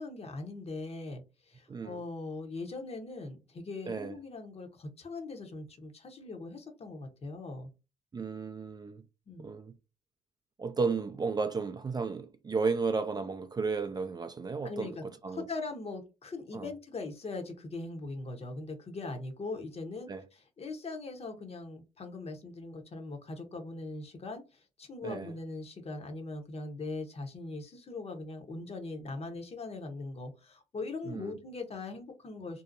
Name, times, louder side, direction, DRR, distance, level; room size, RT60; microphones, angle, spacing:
voice 1, 0.0-7.7 9.3-9.5 14.6-32.6, left 3 dB, 40° left, 0.9 m, -41 dB
voice 2, 3.9-4.2 8.1-9.0 9.4-9.7 10.6-15.4 16.5-16.7 20.1-20.2 25.0-25.3 31.1-31.4, right 4 dB, 25° right, 0.4 m, -33 dB
2.7 x 2.0 x 2.5 m
supercardioid pair, 60°, 15 cm